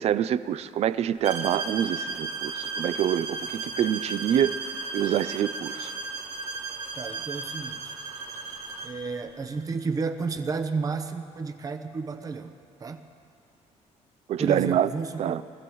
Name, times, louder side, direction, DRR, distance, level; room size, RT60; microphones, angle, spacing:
voice 1, 0.0-4.5 4.9-5.9 14.3-14.9 15.2-15.4, right 10 dB, 55° right, 14 dB, 0.5 m, -26 dB
sound 1, 1.2-9.0, right 4 dB, 70° right, 2.2 m, -35 dB
voice 2, 7.0-8.0 8.8-12.5 12.8-13.0 14.4-15.4, right 4 dB, 30° right, 7 dB, 0.8 m, -32 dB
23.0 x 14.5 x 3.1 m, 2.3 s
cardioid pair, 145°, 13 cm